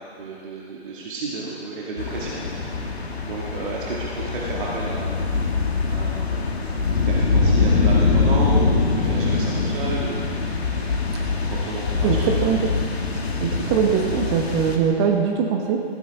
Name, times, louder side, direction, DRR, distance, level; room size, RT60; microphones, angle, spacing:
voice 1, 0.0-2.8 3.2-5.5 5.8-10.3 10.8-11.0 11.5-12.4, right 3 dB, 50° right, -5 dB, 2.0 m, -32 dB
sound 1, 2.0-14.8, left 4 dB, 70° left, 1.7 m, -23 dB
voice 2, 12.0-12.7 13.4-15.8, right 7 dB, 25° right, 2 dB, 1.0 m, -22 dB
15.0 x 12.5 x 3.5 m, 2.3 s
figure-of-eight pair, 125°, 32 cm